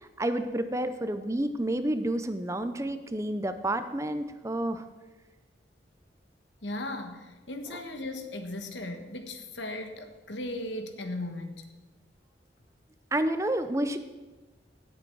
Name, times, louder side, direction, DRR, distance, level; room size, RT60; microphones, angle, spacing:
voice 1, 0.0-4.8 7.7-7.8 13.1-14.0, right 1 dB, 15° right, 10 dB, 0.5 m, -30 dB
voice 2, 6.6-11.6, left 1 dB, 80° left, 7 dB, 1.3 m, -37 dB
17.0 x 7.8 x 4.7 m, 1.2 s
head